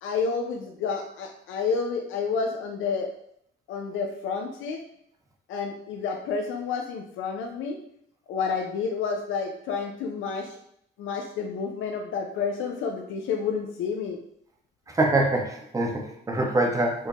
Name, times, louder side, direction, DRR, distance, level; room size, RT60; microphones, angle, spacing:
voice 1, 0.0-3.1 3.7-4.8 5.5-7.8 8.3-10.6 11.0-14.2, left 5 dB, 80° left, 4 dB, 0.5 m, -30 dB
voice 2, 14.9-17.1, right 2 dB, 15° right, 1 dB, 0.7 m, -24 dB
4.6 x 2.1 x 2.9 m, 0.70 s
cardioid pair, 90°, 20 cm